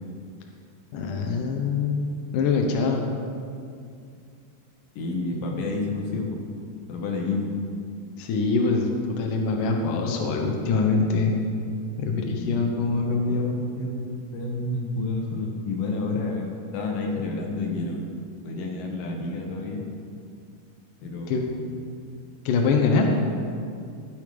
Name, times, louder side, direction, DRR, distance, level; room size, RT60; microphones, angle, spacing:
voice 1, 0.9-2.1 2.3-3.0 8.2-8.9 9.2-11.4 12.0-13.5 21.3-21.4 22.5-23.1, left 4 dB, 85° left, 2 dB, 1.8 m, -24 dB
voice 2, 5.0-6.4 6.9-7.5 12.4-14.0 14.3-18.2 18.4-19.8 21.0-21.8, left 3 dB, 65° left, 0 dB, 2.5 m, -30 dB
12.0 x 8.4 x 5.1 m, 2.3 s
omnidirectional pair, 5.1 m